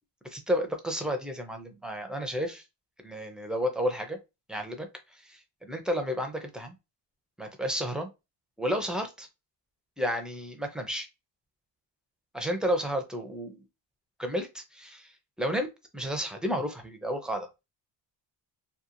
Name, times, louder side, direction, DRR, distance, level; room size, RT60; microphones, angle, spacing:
voice 1, 0.3-2.6 3.0-4.2 4.5-4.9 5.2-6.8 7.4-8.1 8.6-9.3 10.0-11.1 12.3-13.6 14.2-15.1 15.4-15.7 15.9-17.5, equal, ahead, 5 dB, 0.4 m, -31 dB
2.9 x 2.3 x 2.5 m, 0.25 s
cardioid pair, 130°, 46 cm